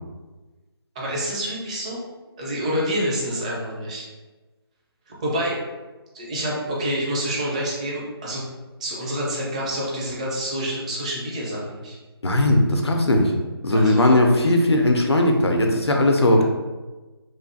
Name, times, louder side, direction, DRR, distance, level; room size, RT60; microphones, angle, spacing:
voice 1, 1.0-2.0 2.4-4.1 5.1-5.6 6.1-8.4 8.8-12.0 13.7-14.2 16.4-16.5, equal, 15° right, -4 dB, 0.5 m, -27 dB
voice 2, 12.2-13.3 13.6-16.4, left 1 dB, 85° left, 2 dB, 0.6 m, -18 dB
3.2 x 2.4 x 2.6 m, 1.2 s
figure-of-eight pair, 155°, 13 cm